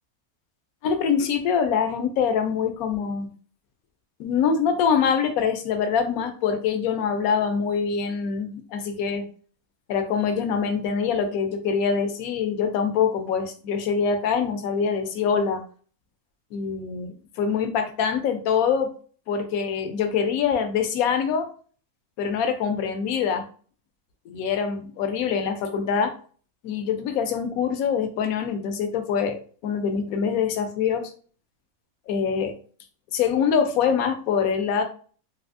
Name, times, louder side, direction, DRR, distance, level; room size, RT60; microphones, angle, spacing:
voice 1, 0.8-3.3 4.2-9.2 9.9-15.6 16.5-18.9 19.3-21.5 22.2-23.5 24.3-26.1 26.6-31.1 32.1-32.5 33.1-34.8, left 6 dB, 80° left, 7 dB, 1.0 m, -24 dB
3.3 x 2.6 x 2.5 m, 0.42 s
omnidirectional pair, 1.5 m